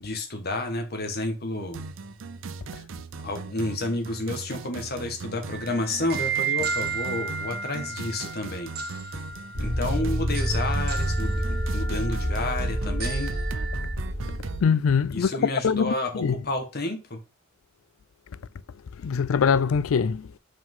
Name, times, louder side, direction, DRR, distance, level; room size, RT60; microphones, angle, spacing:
voice 1, 0.0-1.9 2.7-2.8 3.2-8.7 9.6-13.3 15.1-17.2, left 2 dB, 50° left, 1.6 m, -30 dB
sound 1, 1.7-14.7, right 4 dB, 70° right, 0.6 m, -39 dB
sound 2, 5.5-13.9, right 6 dB, 50° right, 1.3 m, -34 dB
sound 3, 9.6-14.5, equal, 90° right, 1.7 m, -28 dB
voice 2, 14.6-15.3 15.6-16.3 19.0-20.3, left 6 dB, 85° left, 0.4 m, -23 dB
5.7 x 5.1 x 3.7 m
head